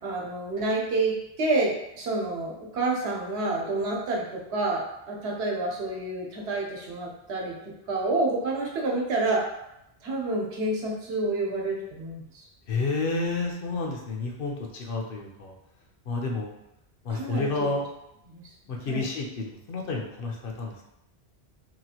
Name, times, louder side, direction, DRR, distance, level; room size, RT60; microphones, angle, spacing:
voice 1, 0.0-7.6 7.9-9.4 10.0-12.4 17.1-17.5 18.3-18.4 18.9-19.0, right 2 dB, 85° right, -2 dB, 1.0 m, -28 dB
voice 2, 12.7-15.5 16.1-16.5 17.0-17.9 18.7-20.9, left 3 dB, 65° left, 0 dB, 0.7 m, -30 dB
2.9 x 2.4 x 2.8 m, 0.84 s
omnidirectional pair, 1.1 m